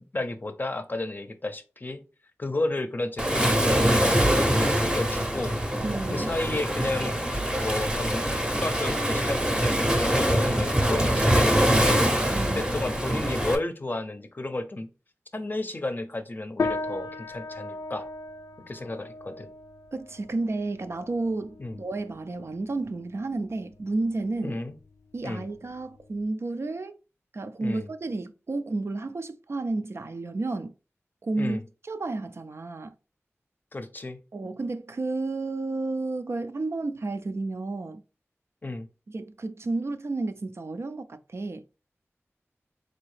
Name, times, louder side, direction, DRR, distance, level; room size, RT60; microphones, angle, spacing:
voice 1, 0.0-2.0 2.4-5.5 6.1-8.3 8.6-12.1 12.5-14.9 15.3-18.1 18.6-19.5 21.6-21.8 24.4-24.7 25.2-25.5 27.6-27.9 31.4-31.6 33.7-34.2 38.6-38.9, left 2 dB, 40° left, 0.5 m, -32 dB
Waves surf, 3.2-13.6, equal, 15° right, 0.7 m, -24 dB
voice 2, 5.8-6.3 12.3-12.6 19.9-24.6 25.1-26.9 27.3-30.7 31.2-31.6 31.9-32.9 34.3-38.0 39.1-41.6, right 2 dB, 60° right, 0.4 m, -31 dB
sound 1, 16.6-26.2, left 3 dB, 90° left, 0.4 m, -37 dB
3.9 x 2.6 x 3.2 m
wide cardioid pair, 65°, 5 cm